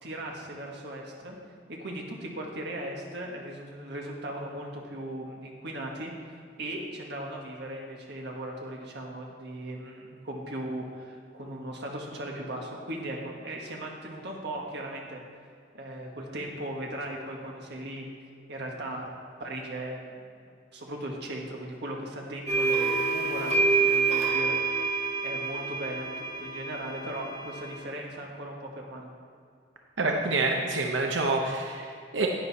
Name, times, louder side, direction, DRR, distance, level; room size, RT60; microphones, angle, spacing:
voice 1, 0.0-1.4 1.7-15.2 15.7-18.1 18.5-19.1 19.4-20.2 20.7-24.6 25.2-29.1, right 1 dB, 65° right, 0 dB, 1.7 m, -38 dB
sound 1, 22.5-27.7, right 4 dB, 35° right, 2.2 m, -27 dB
voice 2, 30.0-32.3, right 3 dB, 80° right, 2 dB, 0.8 m, -27 dB
10.5 x 9.5 x 4.2 m, 2.3 s
head